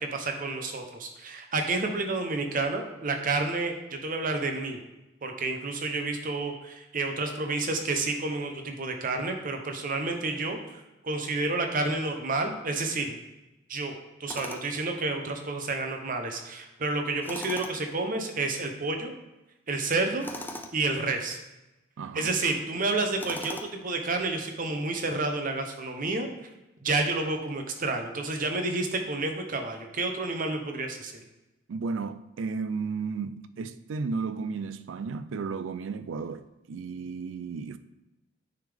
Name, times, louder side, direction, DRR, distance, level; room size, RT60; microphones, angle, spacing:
voice 1, 0.0-4.8 5.2-10.6 11.0-13.2 13.7-19.1 19.7-20.3 20.7-21.4 22.1-26.3 26.8-31.1, right 3 dB, 45° right, 0.8 m, -30 dB
Tools, 14.3-14.8 17.2-18.0 20.2-20.8 23.2-23.9, left 1 dB, 10° left, 0.4 m, -39 dB
voice 2, 22.0-22.3 31.7-37.8, right 4 dB, 75° right, 0.4 m, -34 dB
9.2 x 3.6 x 3.4 m
head